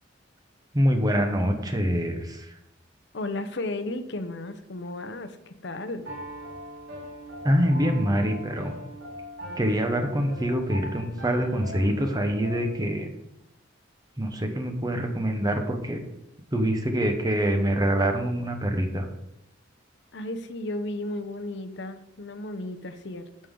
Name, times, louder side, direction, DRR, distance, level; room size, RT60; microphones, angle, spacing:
voice 1, 0.7-2.5 7.4-8.8 9.6-13.1 14.2-16.1 16.5-19.1, equal, 20° right, 5 dB, 1.0 m, -25 dB
voice 2, 3.1-6.1 20.1-23.2, left 2 dB, 65° left, 9 dB, 0.7 m, -34 dB
Piano, 6.0-12.9, equal, 85° right, 2.6 m, -40 dB
13.5 x 5.4 x 3.8 m, 0.86 s
head